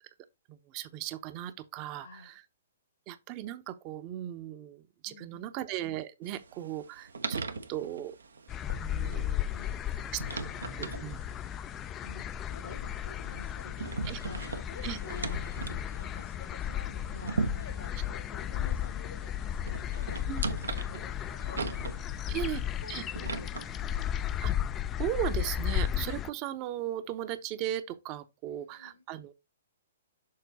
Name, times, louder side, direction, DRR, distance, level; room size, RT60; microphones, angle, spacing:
voice 1, 0.5-2.4 3.1-7.4 7.7-8.2 8.7-9.7 10.1-11.2 14.0-14.2 14.8-15.0 20.3-20.4 22.3-22.6 22.9-23.0 24.4-24.5 25.0-29.3, right 12 dB, 35° right, 0.7 m, -37 dB
voice 2, 1.9-2.3 5.1-5.5 9.1-10.2 12.0-24.1 28.5-29.0, left 4 dB, 75° left, 1.7 m, -50 dB
sound 1, 6.3-24.6, right 4 dB, 80° right, 0.8 m, -40 dB
sound 2, 8.5-26.3, left 11 dB, 25° left, 0.3 m, -34 dB
6.7 x 4.0 x 4.0 m
hypercardioid pair, 125°, 0 cm